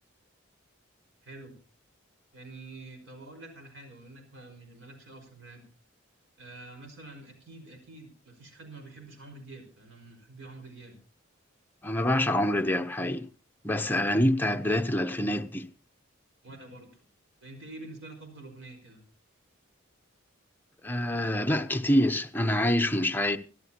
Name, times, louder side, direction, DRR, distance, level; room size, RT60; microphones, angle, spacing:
voice 1, 1.2-1.5 2.3-5.6 6.4-10.9 16.4-16.9 17.4-19.0, right 2 dB, 65° right, 5.1 m, -47 dB
voice 2, 11.8-13.2 13.6-15.6 20.8-23.4, left 1 dB, 10° left, 0.7 m, -26 dB
25.0 x 12.5 x 2.9 m
head